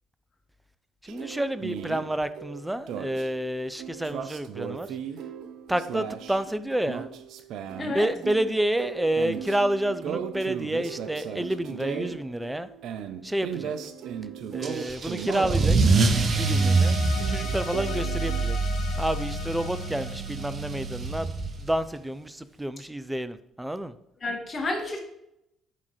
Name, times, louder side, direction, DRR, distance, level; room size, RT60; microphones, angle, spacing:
voice 1, 1.0-4.9 5.7-7.1 7.9-12.7 13.2-13.7 14.5-15.8 16.4-17.0 17.3-18.6 19.0-21.3 21.6-23.9, right 1 dB, 10° right, 0.5 m, -29 dB
sound 1, 1.1-18.4, right 8 dB, 65° right, 0.5 m, -37 dB
Car / Engine starting / Accelerating revving vroom, 14.6-21.8, right 3 dB, 45° right, 0.8 m, -25 dB
sound 2, 16.0-21.3, left 5 dB, 70° left, 0.7 m, -40 dB
voice 2, 24.2-25.0, left 2 dB, 40° left, 1.9 m, -30 dB
11.0 x 3.7 x 3.2 m
hypercardioid pair, 55°, 0 cm